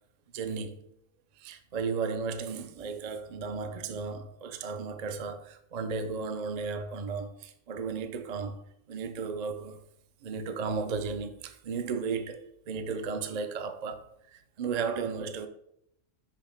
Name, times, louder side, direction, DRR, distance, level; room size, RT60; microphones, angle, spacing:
voice 1, 0.3-0.8 1.4-8.6 8.9-9.8 10.2-15.5, right 5 dB, 50° right, 0.5 m, -34 dB
6.0 x 5.6 x 3.4 m
omnidirectional pair, 1.3 m